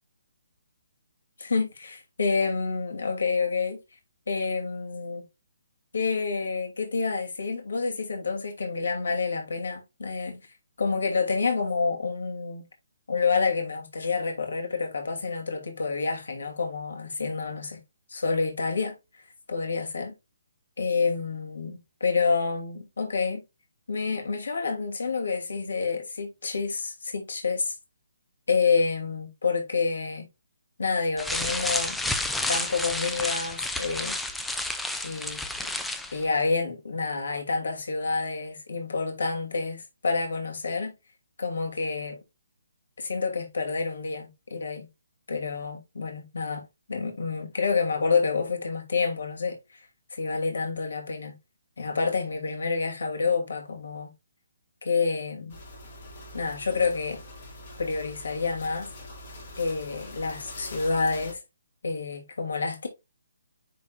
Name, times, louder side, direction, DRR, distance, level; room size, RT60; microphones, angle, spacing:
voice 1, 1.4-3.8 4.3-5.3 5.9-10.4 10.8-12.6 13.1-17.8 18.1-18.9 19.5-20.1 20.8-23.4 23.9-27.7 28.5-30.3 30.8-32.0 32.5-34.2 35.0-35.4 36.1-40.9 41.4-42.2 43.0-44.9 45.3-49.8 50.1-51.3 51.8-54.1 54.8-55.6 56.3-57.2 57.8-58.9 59.6-61.4 61.8-62.9, left 4 dB, 70° left, 2.6 m, -28 dB
sound 1, 31.2-36.2, left 2 dB, ahead, 0.4 m, -30 dB
sound 2, 55.5-61.3, left 1 dB, 30° left, 2.1 m, -44 dB
9.7 x 4.2 x 2.4 m
hypercardioid pair, 180°, 0 cm